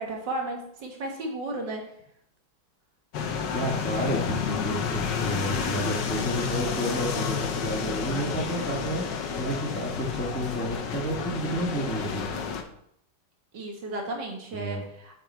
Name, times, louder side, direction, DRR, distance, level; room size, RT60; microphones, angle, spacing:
voice 1, 0.0-1.9 13.5-15.2, right 2 dB, 75° right, 1 dB, 2.3 m, -34 dB
sound 1, 3.1-12.6, left 6 dB, 75° left, 1.6 m, -30 dB
voice 2, 3.5-9.0 9.3-12.3 14.5-14.8, right 1 dB, 5° left, 0 dB, 1.2 m, -31 dB
8.7 x 6.0 x 4.3 m, 0.71 s
omnidirectional pair, 2.0 m